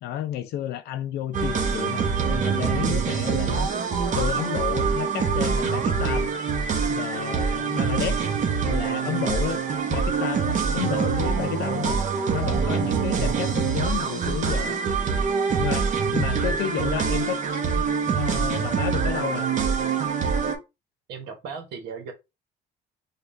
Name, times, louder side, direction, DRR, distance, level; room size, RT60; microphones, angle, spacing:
voice 1, 0.0-3.7 4.1-6.3 6.9-8.3 8.7-9.6 9.9-12.0 12.3-14.8 15.6-17.4 17.7-17.8 18.1-19.5, left 11 dB, 75° left, 0.4 m, -31 dB
sound 1, 1.3-20.5, right 6 dB, 45° right, 0.9 m, -25 dB
voice 2, 21.1-22.1, right 5 dB, 85° right, 1.0 m, -38 dB
5.1 x 2.3 x 2.5 m
cardioid pair, 110°, 17 cm